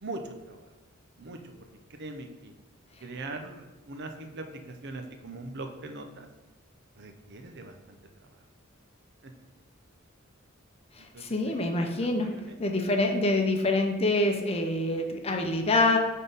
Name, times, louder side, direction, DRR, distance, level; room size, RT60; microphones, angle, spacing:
voice 1, 0.0-0.7 1.2-1.5 1.9-2.5 3.0-6.3 7.0-8.0 8.3-8.4 9.2-9.3 11.0-12.6 13.2-13.3, right 2 dB, 55° right, 5 dB, 0.7 m, -42 dB
voice 2, 11.0-16.0, left 2 dB, 30° left, 3 dB, 0.6 m, -26 dB
6.0 x 3.7 x 5.4 m, 1.2 s
head